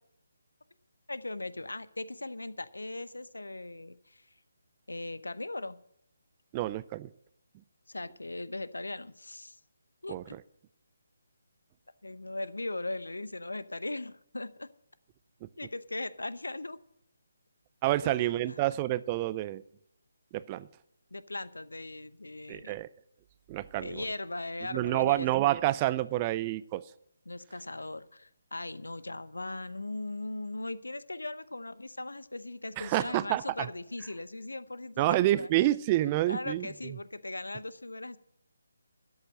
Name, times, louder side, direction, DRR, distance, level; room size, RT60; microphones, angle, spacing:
voice 1, 1.1-4.2 4.9-5.8 7.9-9.6 10.0-10.4 12.0-14.7 15.6-16.8 18.0-18.3 21.1-22.8 23.8-25.3 27.3-35.5 36.3-38.2, left 2 dB, 75° left, 16 dB, 0.7 m, -39 dB
voice 2, 6.5-7.1 10.1-10.2 17.8-19.6 20.3-20.7 22.5-22.9 23.5-24.0 24.7-26.8 32.8-33.7 35.0-36.7, right 16 dB, 20° right, 17 dB, 0.4 m, -28 dB
12.5 x 8.0 x 7.5 m, 0.74 s
figure-of-eight pair, 145°, 0 cm